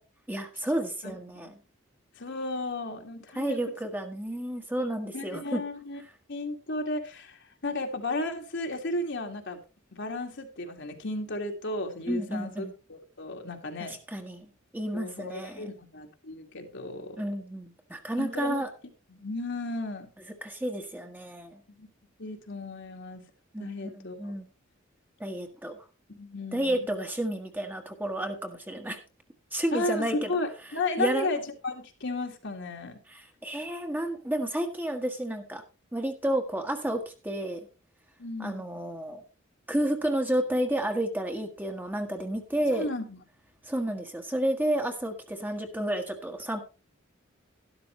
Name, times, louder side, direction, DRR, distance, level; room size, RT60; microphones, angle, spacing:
voice 1, 0.3-1.6 3.3-5.6 12.1-12.7 13.9-15.7 17.2-18.7 20.4-21.6 23.5-24.5 25.2-25.8 26.5-29.0 29.5-30.3 31.0-31.3 33.1-35.6 35.9-37.7 38.4-39.2 39.7-42.9 43.6-46.6, right 1 dB, 10° right, 5 dB, 1.4 m, -31 dB
voice 2, 1.0-1.5 2.2-3.6 5.1-6.0 6.3-9.6 9.9-14.0 14.9-17.2 18.2-18.6 19.1-20.1 21.7-21.9 22.2-23.2 23.6-24.3 26.1-26.9 29.7-33.0 38.2-38.7 42.7-43.2, left 2 dB, 65° left, 3 dB, 2.1 m, -34 dB
12.0 x 12.0 x 3.1 m, 0.33 s
head